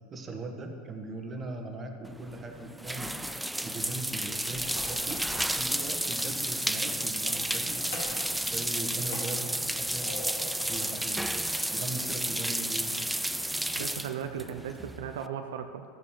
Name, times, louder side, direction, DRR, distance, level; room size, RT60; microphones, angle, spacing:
voice 1, 0.1-3.1 3.6-5.2 5.5-8.0 8.5-10.1 10.7-11.3 11.7-13.0, right 2 dB, 30° right, 4 dB, 1.4 m, -39 dB
sound 1, 2.0-15.3, right 1 dB, 5° right, 0.3 m, -32 dB
sound 2, 4.4-11.1, left 2 dB, 25° left, 1.3 m, -53 dB
sound 3, 4.6-6.0 7.1-8.3 8.6-10.9 11.3-12.7, left 2 dB, 75° left, 2.3 m, -45 dB
voice 2, 13.8-15.8, right 8 dB, 75° right, 6 dB, 0.5 m, -36 dB
13.5 x 8.3 x 3.2 m, 2.4 s
hypercardioid pair, 90°, 0 cm